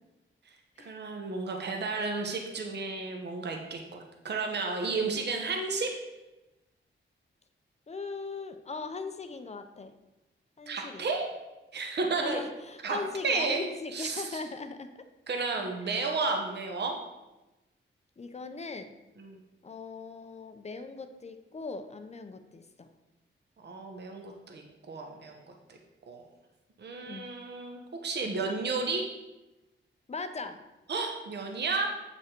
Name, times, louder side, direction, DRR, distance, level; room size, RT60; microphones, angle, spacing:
voice 1, 0.8-5.9 10.7-11.3 11.7-12.4 12.8-13.0 13.2-13.6 13.9-14.4 15.3-17.0 19.2-19.4 23.6-25.4 26.1-26.2 26.8-29.1 30.9-31.9, right 4 dB, 55° right, 2 dB, 1.1 m, -32 dB
voice 2, 7.9-9.9 10.6-11.1 12.2-15.1 15.9-16.0 18.2-18.9 19.6-22.9 27.1-27.3 30.1-30.6, left 4 dB, 30° left, 8 dB, 0.6 m, -39 dB
8.1 x 5.9 x 4.4 m, 1.0 s
wide cardioid pair, 125°, 21 cm